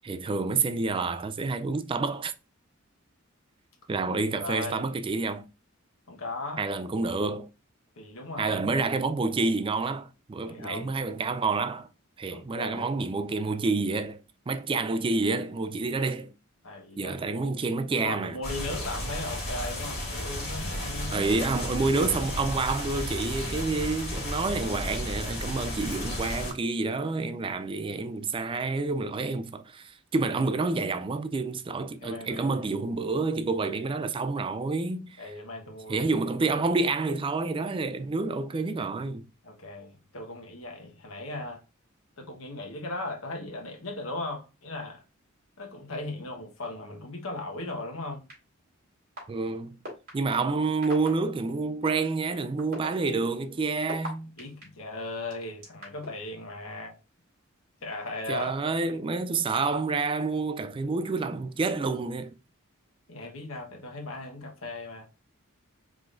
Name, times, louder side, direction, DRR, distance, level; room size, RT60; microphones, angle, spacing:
voice 1, 0.0-2.3 3.9-5.5 6.6-7.5 8.4-11.9 12.2-14.2 14.5-16.3 17.0-18.4 21.1-35.2 35.9-39.3 49.3-49.8 50.1-54.3 58.3-62.3, right 3 dB, 25° right, 0.3 m, -28 dB
voice 2, 4.4-4.8 6.1-6.6 8.0-8.7 10.5-10.9 12.3-13.0 16.6-17.2 18.0-21.4 32.0-32.8 33.9-34.0 35.2-36.1 39.4-41.6 42.2-45.0 45.6-48.2 54.4-57.0 57.8-59.0 63.1-65.1, left 2 dB, 70° left, 1.1 m, -37 dB
sound 1, 18.4-26.5, left 1 dB, 50° left, 2.2 m, -33 dB
sound 2, 48.3-48.4 49.2-49.3 49.8-50.1 50.8-51.1 51.8-51.9 52.6-54.6 55.3-56.1, right 1 dB, 45° right, 2.6 m, -38 dB
4.9 x 3.7 x 2.5 m
head